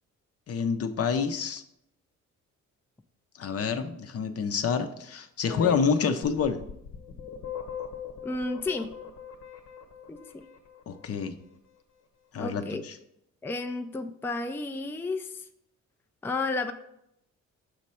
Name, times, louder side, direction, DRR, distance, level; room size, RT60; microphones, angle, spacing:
voice 1, 0.5-1.6 3.4-6.6 10.9-11.4 12.3-13.0, left 6 dB, 50° left, 8 dB, 0.7 m, -28 dB
voice 2, 5.5-5.8 8.2-8.9 10.1-10.4 12.4-12.8 13.4-15.3 16.2-16.7, left 3 dB, 10° left, 6 dB, 0.4 m, -32 dB
sound 1, 6.2-11.1, left 8 dB, 70° left, 1.0 m, -41 dB
6.4 x 3.2 x 5.5 m, 0.78 s
cardioid pair, 90°, 30 cm